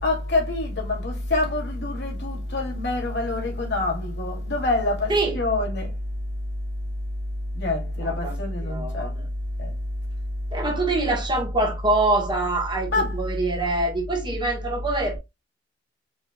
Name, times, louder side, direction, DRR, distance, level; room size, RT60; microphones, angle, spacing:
voice 1, 0.0-5.9 7.5-9.1 9.6-9.7 12.9-13.1, left 2 dB, 60° left, 2.6 m, -26 dB
voice 2, 8.0-8.4 8.6-9.2 10.5-15.2, right 2 dB, 25° right, 1.4 m, -25 dB
4.8 x 4.3 x 2.3 m
head